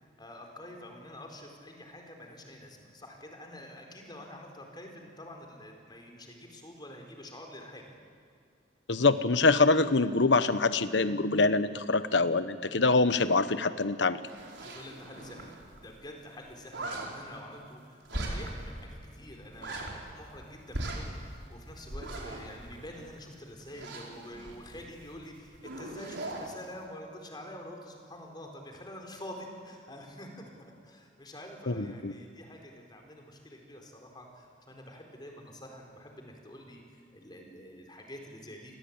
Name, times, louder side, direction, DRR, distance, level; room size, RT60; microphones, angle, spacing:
voice 1, 0.2-7.9 14.6-38.7, left 1 dB, 25° left, 2 dB, 4.4 m, -47 dB
voice 2, 8.9-14.2 31.7-32.1, left 3 dB, 75° left, 13 dB, 1.1 m, -25 dB
sound 1, 14.3-15.8 16.0-16.1 16.4-17.1 18.1-18.7 19.0-19.1 19.4-20.4 20.7-23.2 23.6-25.2 25.5-26.5, right 1 dB, 75° right, 4.9 m, -39 dB
28.5 x 20.5 x 8.9 m, 2.3 s
head